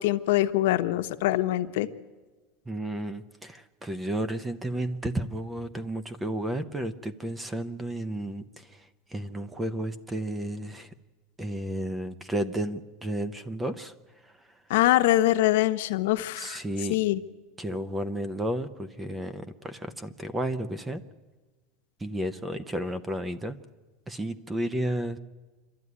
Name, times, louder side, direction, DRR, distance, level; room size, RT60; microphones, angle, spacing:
voice 1, 0.0-1.9 14.7-16.6 16.9-17.2, left 15 dB, 70° left, 9 dB, 1.0 m, -23 dB
voice 2, 2.7-10.9 11.4-13.9 14.2-14.3 16.4-17.0 17.6-21.0 22.0-23.6 24.1-25.2, right 1 dB, 10° right, 14 dB, 0.7 m, -32 dB
27.0 x 12.5 x 9.6 m, 1.3 s
supercardioid pair, 175°, 0 cm